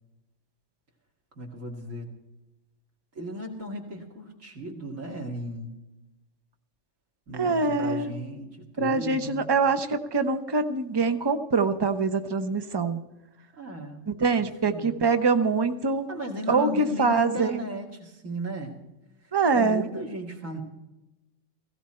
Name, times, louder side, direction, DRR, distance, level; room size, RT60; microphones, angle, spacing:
voice 1, 1.4-2.1 3.1-5.7 7.3-9.5 13.5-14.1 14.4-15.0 16.1-18.8 19.2-20.6, right 1 dB, 80° right, 0 dB, 2.6 m, -36 dB
voice 2, 7.3-8.1 8.8-13.0 14.1-16.1 16.5-17.6 19.3-19.8, right 4 dB, 25° right, 8 dB, 0.7 m, -24 dB
16.5 x 15.5 x 4.4 m, 1.0 s
omnidirectional pair, 1.3 m